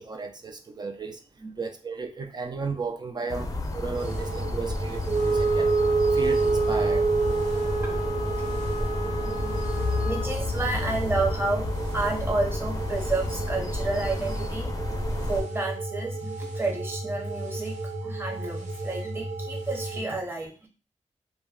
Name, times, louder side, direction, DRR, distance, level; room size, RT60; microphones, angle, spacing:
voice 1, 0.0-1.2 1.6-5.7 6.1-7.0, right 4 dB, 35° right, 5 dB, 0.3 m, -34 dB
sound 1, 3.3-15.4, left 2 dB, 30° left, 0.5 m, -32 dB
sound 2, 4.0-20.0, right 2 dB, 85° right, 0.6 m, -34 dB
Wind instrument woodwind instrument, 5.1-10.4, right 4 dB, 60° right, 1.0 m, -26 dB
voice 2, 9.2-9.5 10.0-11.7 11.9-14.7 15.3-17.7 18.0-20.7, right 2 dB, 20° right, 0 dB, 0.8 m, -30 dB
2.2 x 2.1 x 3.5 m, 0.34 s
wide cardioid pair, 85°, 12 cm